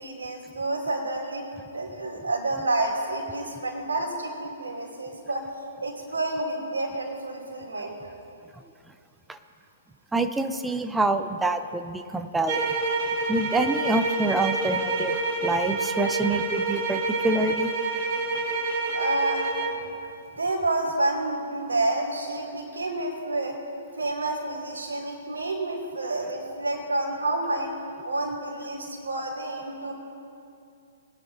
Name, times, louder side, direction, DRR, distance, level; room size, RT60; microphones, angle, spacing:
voice 1, 0.0-1.5 1.7-5.4 5.8-8.1 18.9-19.8 20.4-23.6 24.0-27.7 28.0-29.9, right 2 dB, 80° right, 0 dB, 2.8 m, -29 dB
voice 2, 10.1-12.7 13.3-15.2 15.4-17.7, right 2 dB, 5° right, 8 dB, 0.6 m, -26 dB
sound 1, 12.5-19.8, right 3 dB, 45° right, 1.8 m, -27 dB
21.5 x 9.9 x 2.7 m, 2.6 s
figure-of-eight pair, 120°, 0 cm